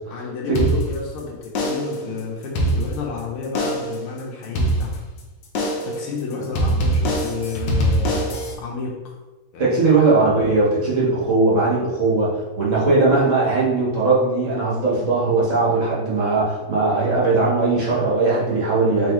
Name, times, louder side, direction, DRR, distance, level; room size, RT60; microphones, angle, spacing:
voice 1, 0.1-5.0 5.8-8.3 8.6-9.2 9.5-9.9 12.6-12.9, left 5 dB, 90° left, -2 dB, 1.7 m, -31 dB
sound 1, 0.5-1.2 1.5-2.0 2.4-3.2 3.5-4.0 4.5-5.2 5.5-6.0 6.5-8.5, right 1 dB, 65° left, 1.3 m, -22 dB
voice 2, 9.6-12.3 12.6-19.1, right 3 dB, 40° right, -6 dB, 1.4 m, -19 dB
4.7 x 3.6 x 3.0 m, 1.1 s
omnidirectional pair, 2.3 m